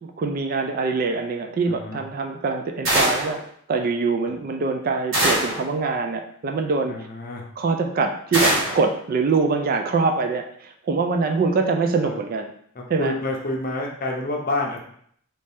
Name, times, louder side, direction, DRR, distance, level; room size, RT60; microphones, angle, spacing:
voice 1, 0.0-3.4 3.7-6.9 7.6-12.5 12.9-13.1, right 4 dB, 40° right, 5 dB, 0.3 m, -24 dB
voice 2, 1.7-2.0 6.9-7.4 12.0-12.2 12.7-14.8, left 2 dB, 40° left, 0 dB, 0.6 m, -28 dB
sound 1, 2.9-3.4 5.1-5.7 8.3-8.8, right 1 dB, 65° right, 1.3 m, -21 dB
3.1 x 2.7 x 3.3 m, 0.64 s
head